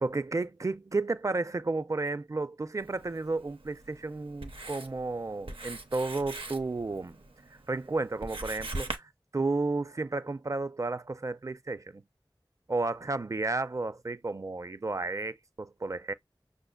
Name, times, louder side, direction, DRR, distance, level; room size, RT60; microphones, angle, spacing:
voice 1, 0.0-7.2 7.5-12.0 12.7-16.1, right 3 dB, 40° right, 0.3 m, -32 dB
Writing, 2.8-9.0, right 2 dB, 85° right, 0.6 m, -42 dB
5.8 x 2.5 x 2.2 m
wide cardioid pair, 45°, 9 cm